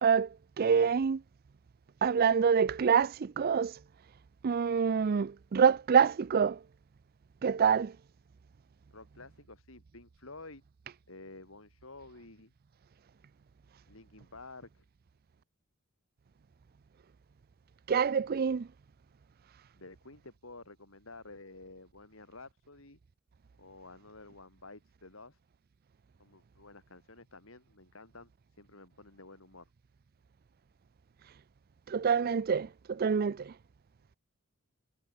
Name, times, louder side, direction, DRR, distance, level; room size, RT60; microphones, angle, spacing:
voice 1, 0.6-1.2 2.0-3.8 4.4-6.6 7.4-7.9 17.9-18.7 31.9-33.5, right 6 dB, 45° right, 0.4 m, -26 dB
voice 2, 8.9-10.6 11.1-12.5 13.9-14.9 19.8-23.0 23.6-25.4 26.2-28.3 28.6-29.7, left 3 dB, 70° left, 3.8 m, -51 dB
head